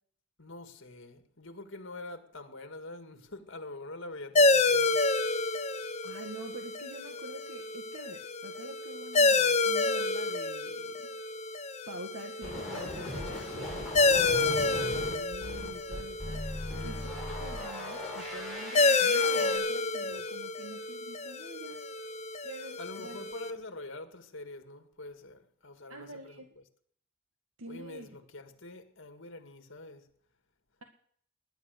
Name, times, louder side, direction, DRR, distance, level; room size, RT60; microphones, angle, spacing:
voice 1, 0.4-5.0 16.7-17.6 22.8-26.4 27.7-30.1, left 2 dB, 60° left, 2.1 m, -45 dB
sound 1, 4.4-23.5, left 3 dB, 30° left, 1.0 m, -29 dB
voice 2, 6.0-11.1 11.9-21.8 22.4-23.2 25.9-26.5 27.6-28.1, right 2 dB, 80° right, 1.7 m, -46 dB
sound 2, 12.4-19.6, left 1 dB, ahead, 7.9 m, -39 dB
20.0 x 10.5 x 6.5 m
head